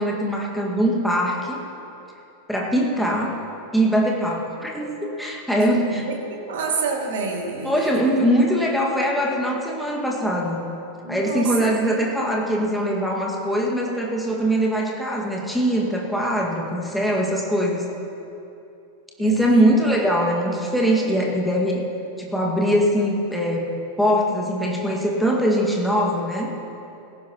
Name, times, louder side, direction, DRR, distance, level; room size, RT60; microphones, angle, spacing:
voice 1, 0.0-1.6 2.5-3.4 3.7-6.0 7.6-10.6 11.1-17.9 19.2-21.9 22.2-23.7 24.0-26.5, equal, ahead, -2 dB, 2.0 m, -22 dB
voice 2, 5.6-8.2 11.0-11.5 11.8-12.3 19.2-19.8 21.1-21.2, right 4 dB, 55° right, -1 dB, 2.5 m, -29 dB
19.0 x 16.0 x 3.1 m, 2.8 s
figure-of-eight pair, 90°, 0 cm